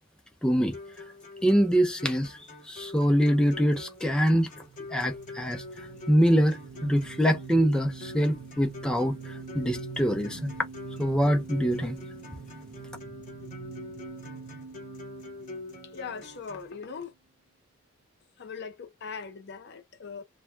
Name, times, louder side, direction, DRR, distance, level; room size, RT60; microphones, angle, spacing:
voice 1, 0.4-0.8 1.4-4.5 4.9-5.6 6.1-10.5 11.0-12.0, equal, 5° left, 0.4 m, -24 dB
sound 1, 0.7-16.7, left 2 dB, 40° left, 0.9 m, -45 dB
sound 2, 4.4-16.8, right 5 dB, 65° right, 0.5 m, -45 dB
voice 2, 15.9-17.1 18.4-20.2, left 5 dB, 55° left, 0.6 m, -40 dB
2.2 x 2.1 x 3.1 m
head